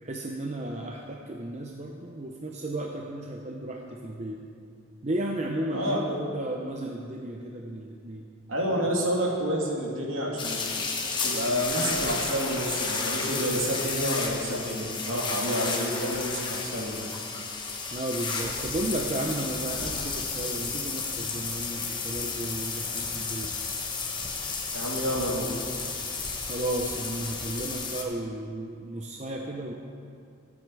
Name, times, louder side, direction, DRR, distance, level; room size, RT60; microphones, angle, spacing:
voice 1, 0.0-4.4 5.0-8.3 15.6-15.9 17.9-23.5 26.4-29.7, right 1 dB, 30° right, 1 dB, 0.8 m, -34 dB
voice 2, 8.5-10.6 11.2-17.1 24.7-25.5, equal, 65° right, -3 dB, 2.8 m, -29 dB
sound 1, 10.4-28.0, left 4 dB, 20° left, 1.2 m, -32 dB
22.5 x 8.7 x 4.8 m, 2.4 s
head